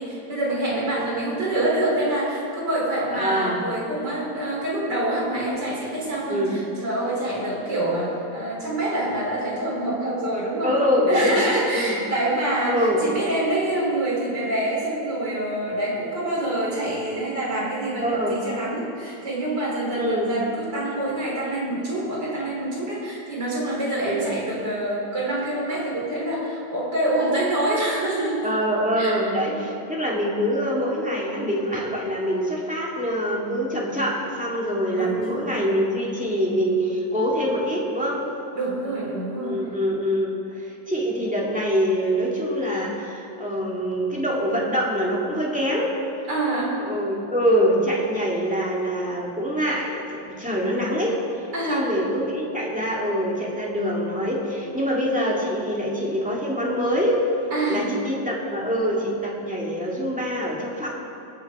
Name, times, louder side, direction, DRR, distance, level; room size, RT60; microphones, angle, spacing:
voice 1, 0.0-10.7 11.0-28.5 29.0-29.2 29.5-29.7 34.9-35.5 38.5-39.6 46.3-46.7 51.5-51.8 57.5-57.8, right 1 dB, 70° right, -5 dB, 4.2 m, -26 dB
voice 2, 3.1-3.6 6.3-6.5 10.6-12.0 12.7-13.0 18.0-18.4 19.9-20.3 24.0-24.3 28.4-38.2 39.4-45.9 46.8-51.2 51.7-57.2 57.7-60.9, equal, 5° right, -4 dB, 2.1 m, -24 dB
23.0 x 7.7 x 4.9 m, 2.7 s
omnidirectional pair, 1.9 m